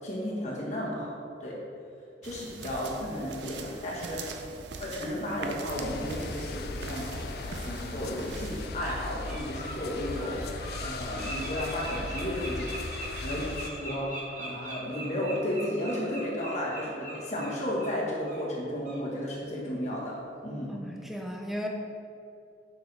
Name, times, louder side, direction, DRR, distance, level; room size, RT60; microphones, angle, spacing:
voice 1, 0.0-1.1 1.4-1.6 2.2-4.4 4.8-10.5 10.8-20.2 20.4-20.7, left 1 dB, 40° left, -5 dB, 1.3 m, -33 dB
sound 1, 2.2-8.7, right 4 dB, 75° right, 0.5 m, -42 dB
sound 2, 5.7-13.7, left 3 dB, 55° left, 0.4 m, -38 dB
Bird, 8.0-8.1 8.5-8.9 9.2-17.9 18.2-18.4 18.8-19.0, right 1 dB, 45° right, 1.1 m, -41 dB
voice 2, 20.7-21.7, equal, ahead, 1 dB, 0.5 m, -35 dB
6.5 x 5.6 x 3.3 m, 2.5 s
head